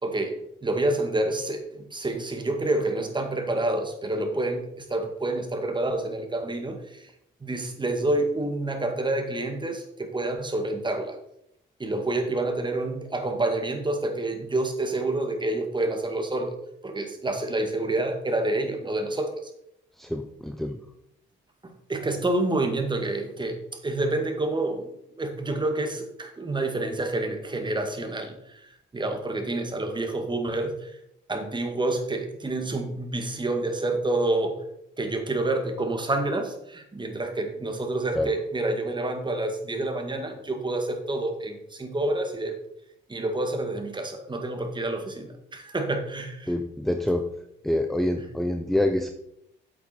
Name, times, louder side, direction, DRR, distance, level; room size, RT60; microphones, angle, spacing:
voice 1, 0.0-7.1 7.4-11.2 11.8-16.6 16.8-19.5 21.6-30.9 31.3-34.6 35.0-42.6 43.1-46.5, right 2 dB, 25° right, 5 dB, 1.9 m, -28 dB
voice 2, 20.0-20.8 38.1-38.3 46.5-47.3 47.6-49.1, left 1 dB, ahead, 5 dB, 0.7 m, -26 dB
8.2 x 8.1 x 4.4 m, 0.76 s
cardioid pair, 90°, 20 cm